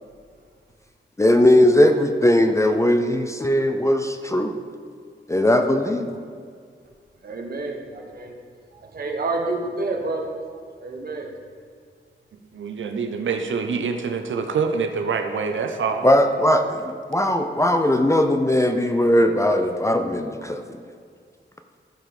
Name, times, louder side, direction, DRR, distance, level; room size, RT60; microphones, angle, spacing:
voice 1, 1.2-4.5 5.3-6.2 16.0-20.8, left 1 dB, 15° left, 5 dB, 0.4 m, -19 dB
voice 2, 7.2-8.3 8.9-10.3 10.8-11.3, right 3 dB, 50° right, 1 dB, 1.3 m, -28 dB
voice 3, 12.5-16.1, right 5 dB, 75° right, 5 dB, 0.8 m, -25 dB
14.5 x 5.1 x 4.9 m, 2.1 s
wide cardioid pair, 175°, 20 cm